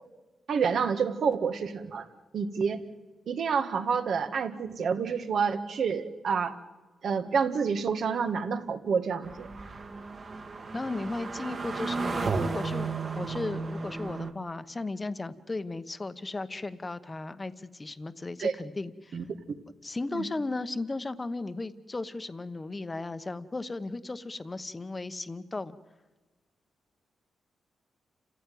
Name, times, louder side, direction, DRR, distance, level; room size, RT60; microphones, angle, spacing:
voice 1, 0.5-2.1 2.3-2.8 3.3-6.6 7.0-9.5 18.4-18.5 19.1-19.2 20.1-20.2, right 6 dB, 60° right, 8 dB, 1.8 m, -28 dB
sound 1, 9.2-14.3, right 4 dB, 40° right, 1.9 m, -33 dB
voice 2, 10.7-19.2 19.8-25.8, left 2 dB, 20° left, 11 dB, 1.1 m, -36 dB
29.0 x 15.0 x 9.4 m, 1.3 s
cardioid pair, 125°, 0 cm